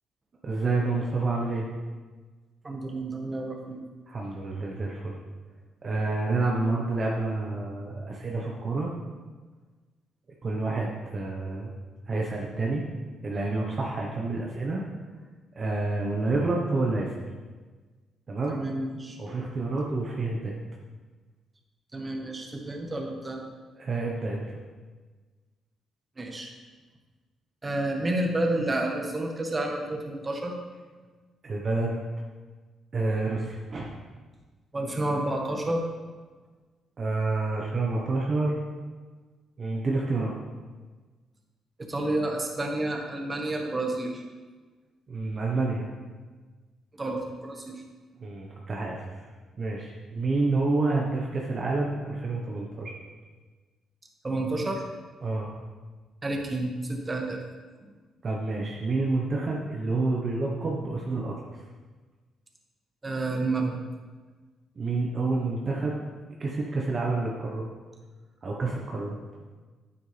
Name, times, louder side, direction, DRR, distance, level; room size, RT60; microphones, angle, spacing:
voice 1, 0.4-1.6 4.1-5.2 5.8-8.9 10.4-11.7 12.1-12.8 13.2-14.8 15.6-17.1 18.3-18.6 19.2-20.6 23.8-24.5 31.4-32.0 32.9-33.9 37.0-38.6 39.6-40.4 45.1-45.9 48.2-49.1 49.6-52.9 55.2-55.5 58.2-61.3 64.8-66.0 66.4-67.7 68.4-69.2, right 3 dB, 40° right, -2 dB, 1.1 m, -28 dB
voice 2, 2.6-3.8 18.5-19.2 21.9-23.5 26.2-26.5 27.6-30.6 34.7-35.8 41.9-44.2 46.9-47.7 54.2-54.8 56.2-57.4 63.0-63.8, right 2 dB, 25° right, 2 dB, 1.5 m, -30 dB
9.4 x 8.5 x 3.4 m, 1.4 s
cardioid pair, 90°, 0 cm